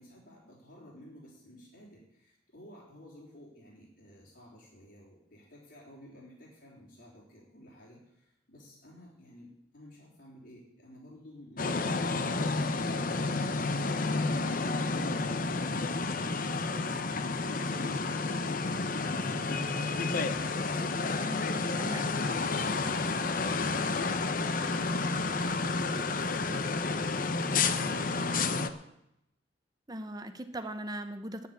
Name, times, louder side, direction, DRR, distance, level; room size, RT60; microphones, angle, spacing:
voice 1, 0.0-9.5 9.7-21.4 21.7-28.2, equal, 70° left, -8 dB, 4.1 m, -52 dB
sound 1, 11.6-28.7, left 3 dB, 50° left, 0.8 m, -30 dB
voice 2, 21.8-22.1 29.9-31.5, right 1 dB, 20° right, 8 dB, 0.9 m, -39 dB
10.0 x 9.4 x 8.5 m, 0.83 s
head